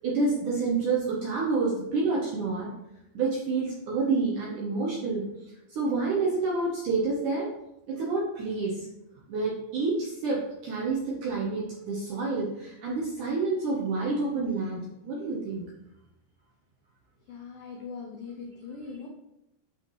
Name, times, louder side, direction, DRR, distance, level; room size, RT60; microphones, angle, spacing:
voice 1, 0.0-2.7 3.1-7.5 7.9-8.9 9.3-15.6, right 3 dB, 70° right, -4 dB, 1.9 m, -28 dB
voice 2, 17.3-19.1, left 5 dB, 90° left, -1 dB, 1.8 m, -41 dB
12.0 x 4.4 x 3.1 m, 0.88 s
omnidirectional pair, 5.0 m